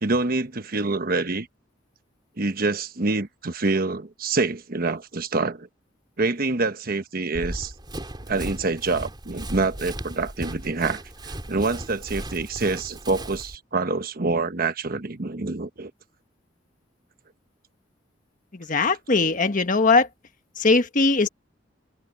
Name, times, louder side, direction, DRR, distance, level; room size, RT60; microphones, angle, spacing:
voice 1, 0.0-1.5 2.4-5.7 6.2-7.7 8.3-15.9, right 3 dB, 50° right, 1.1 m, -26 dB
Run, 7.3-13.6, right 1 dB, 25° right, 4.4 m, -36 dB
voice 2, 18.5-20.1 20.6-21.3, left 3 dB, 45° left, 1.4 m, -20 dB
head